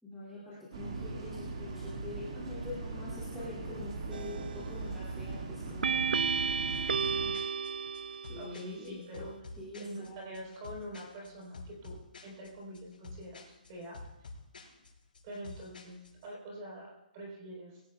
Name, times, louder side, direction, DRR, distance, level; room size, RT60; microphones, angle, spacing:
voice 1, 0.0-6.0 8.3-10.4, left 2 dB, ahead, -13 dB, 2.6 m, -45 dB
sound 1, 0.7-7.3, right 3 dB, 40° right, 2.0 m, -40 dB
sound 2, 4.1-4.6 5.8-8.6, right 6 dB, 75° right, 0.4 m, -32 dB
sound 3, 6.7-16.3, left 3 dB, 70° left, 6.1 m, -49 dB
voice 2, 8.4-9.3 9.8-14.3 15.2-17.8, equal, 20° right, -2 dB, 4.0 m, -45 dB
20.0 x 18.0 x 2.4 m, 0.97 s
hypercardioid pair, 175°, 5 cm